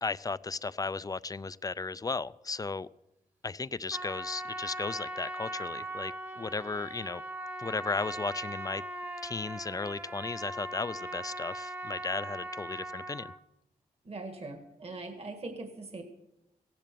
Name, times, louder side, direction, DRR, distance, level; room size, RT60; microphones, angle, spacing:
voice 1, 0.0-2.9 3.4-7.2 7.6-8.8 9.2-13.3, left 4 dB, 25° left, 18 dB, 0.4 m, -35 dB
Trumpet, 3.9-13.4, right 1 dB, 15° right, 1.1 m, -40 dB
voice 2, 14.0-16.0, right 3 dB, 40° right, 6 dB, 1.8 m, -41 dB
15.5 x 10.5 x 6.9 m, 0.89 s
cardioid pair, 90°, 15 cm